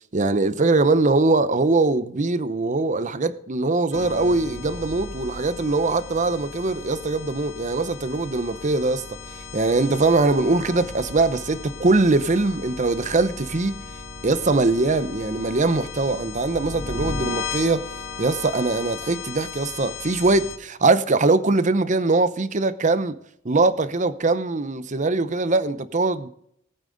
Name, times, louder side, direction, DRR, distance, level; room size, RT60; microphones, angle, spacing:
voice 1, 0.1-9.0 9.5-13.8 14.2-17.9 18.2-23.1 23.4-26.3, right 3 dB, 35° right, 0.7 m, -22 dB
sound 1, 3.9-20.6, left 4 dB, 75° left, 2.4 m, -36 dB
19.0 x 8.8 x 4.0 m
head